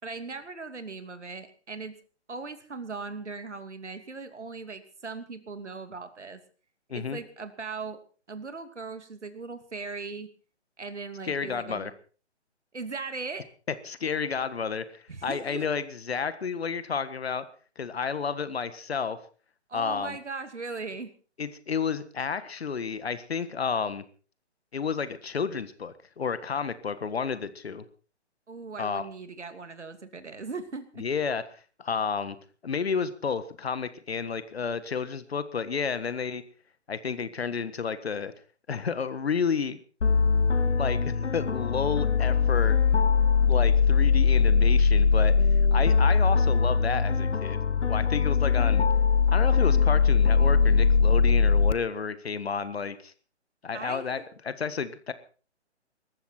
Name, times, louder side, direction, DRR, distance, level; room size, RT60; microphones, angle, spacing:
voice 1, 0.0-1.9 2.3-6.4 6.9-8.0 8.3-10.3 10.8-11.9 12.7-13.4 15.1-15.7 19.7-21.1 28.5-31.1 53.7-54.3, right 4 dB, 75° right, 9 dB, 2.7 m, -39 dB
voice 2, 11.2-11.9 13.8-17.4 17.8-19.2 19.7-20.2 21.4-24.0 24.7-27.8 28.8-29.0 31.0-31.4 31.8-32.4 32.6-36.4 36.9-38.3 38.7-39.8 40.8-42.8 43.5-47.6 47.8-48.9 49.3-53.1 53.6-55.1, left 6 dB, 60° left, 13 dB, 1.6 m, -31 dB
sound 1, 40.0-51.7, left 5 dB, 85° left, 1.0 m, -21 dB
20.0 x 14.5 x 4.4 m, 0.39 s
figure-of-eight pair, 145°, 35 cm